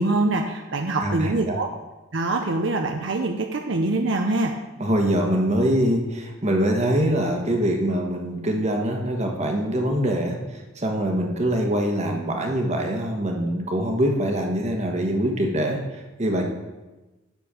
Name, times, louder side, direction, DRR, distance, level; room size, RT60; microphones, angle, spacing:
voice 1, 0.0-1.7 2.1-4.5, right 2 dB, 70° right, 3 dB, 0.7 m, -24 dB
voice 2, 1.0-1.6 4.8-16.4, right 1 dB, 35° right, 2 dB, 1.4 m, -24 dB
10.5 x 4.4 x 6.8 m, 1.1 s
head